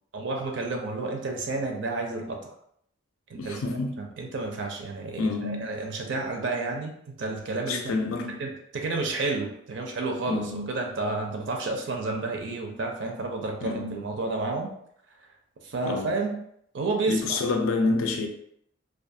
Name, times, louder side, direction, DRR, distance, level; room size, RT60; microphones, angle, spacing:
voice 1, 0.1-2.5 3.3-7.9 8.4-14.7 15.6-16.3 16.7-17.4, right 3 dB, 60° right, 0.4 m, -31 dB
voice 2, 3.4-4.0 5.2-5.7 7.7-8.4 10.3-10.7 13.6-14.0 15.8-16.1 17.1-18.3, left 3 dB, 90° left, 0.4 m, -28 dB
2.4 x 2.3 x 2.6 m
head